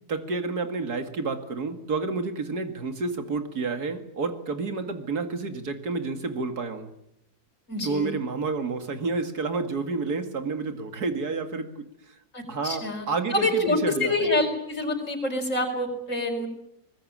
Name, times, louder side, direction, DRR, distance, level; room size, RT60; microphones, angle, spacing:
voice 1, 0.1-6.9 7.8-12.1 12.5-14.3, right 4 dB, 80° right, 7 dB, 2.7 m, -30 dB
voice 2, 7.7-8.1 12.3-16.5, left 2 dB, 55° left, 2 dB, 5.3 m, -26 dB
24.0 x 20.0 x 8.8 m, 0.80 s
omnidirectional pair, 1.6 m